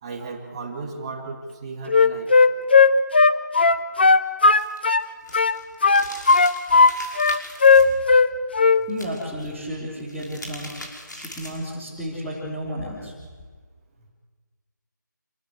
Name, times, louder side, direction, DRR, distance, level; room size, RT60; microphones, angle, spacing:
voice 1, 0.0-2.3, right 3 dB, 20° right, 0 dB, 2.2 m, -35 dB
Wind instrument woodwind instrument, 1.9-5.1 5.3-6.9 7.2-8.3 8.5-8.8, left 4 dB, 30° left, 0.8 m, -15 dB
sound 1, 4.4-7.8 8.9-9.5 10.0-11.7, left 1 dB, 70° left, 6.0 m, -40 dB
voice 2, 8.7-10.8 11.1-13.1, equal, 5° left, -12 dB, 3.4 m, -33 dB
27.5 x 17.5 x 8.1 m, 1.5 s
figure-of-eight pair, 165°, 11 cm